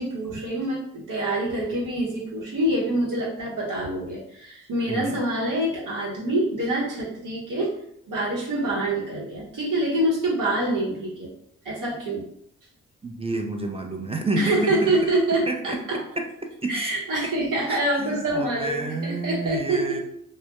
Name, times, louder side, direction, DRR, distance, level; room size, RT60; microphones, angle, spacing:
voice 1, 0.0-7.7 8.1-11.3 11.6-12.3 14.3-16.0 16.7-20.0, right 1 dB, 70° right, -5 dB, 0.9 m, -26 dB
voice 2, 13.0-14.9 15.5-15.8 16.2-16.3 16.6-16.9 17.7-20.0, right 2 dB, 20° right, 2 dB, 0.4 m, -29 dB
2.1 x 2.1 x 2.8 m, 0.71 s
supercardioid pair, 45°, 33 cm